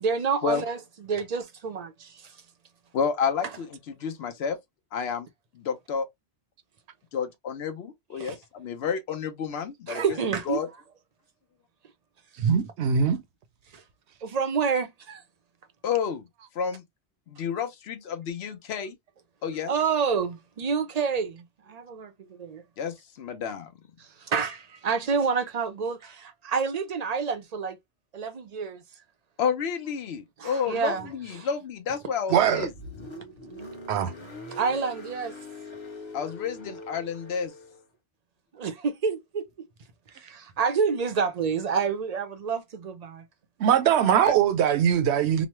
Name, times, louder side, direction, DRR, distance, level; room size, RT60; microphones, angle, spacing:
voice 1, 0.0-2.4 8.2-8.4 9.9-10.6 13.7-13.8 14.2-15.2 19.7-22.6 24.2-27.8 28.1-28.8 30.4-31.5 34.5-35.3 38.5-39.5 40.1-43.2, right 5 dB, 50° right, 0.5 m, -28 dB
voice 2, 2.9-4.6 4.9-5.3 5.5-6.1 7.1-10.0 10.5-10.7 15.8-16.3 16.5-16.8 17.3-19.0 19.4-19.7 22.8-23.7 29.4-32.7 36.1-37.5 44.0-44.3, left 6 dB, 70° left, 0.9 m, -30 dB
voice 3, 12.4-13.2 32.3-32.7 33.9-34.1 43.6-45.5, right 8 dB, 70° right, 0.8 m, -21 dB
Car, 32.4-37.8, left 1 dB, 30° left, 0.8 m, -42 dB
3.0 x 2.1 x 2.9 m
omnidirectional pair, 1.2 m